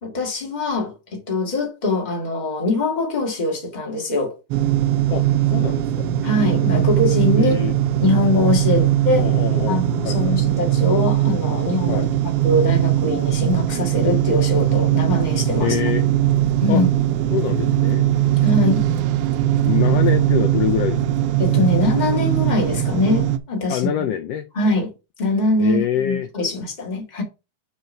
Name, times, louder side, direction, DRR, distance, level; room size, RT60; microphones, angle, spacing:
voice 1, 0.0-4.4 6.2-7.6 8.0-9.3 9.7-15.8 16.6-16.9 18.4-18.9 21.4-24.1 24.5-24.9 25.2-27.2, left 2 dB, 20° left, 1.4 m, -22 dB
sound 1, 4.5-23.4, right 12 dB, 90° right, 1.3 m, -20 dB
voice 2, 5.1-6.1 7.3-7.7 8.8-8.9 9.2-10.4 11.9-12.1 15.6-16.1 16.7-16.8 17.3-18.1 19.7-21.0 23.7-24.5 25.6-26.3, left 11 dB, 80° left, 1.4 m, -25 dB
5.5 x 4.5 x 5.2 m
omnidirectional pair, 3.5 m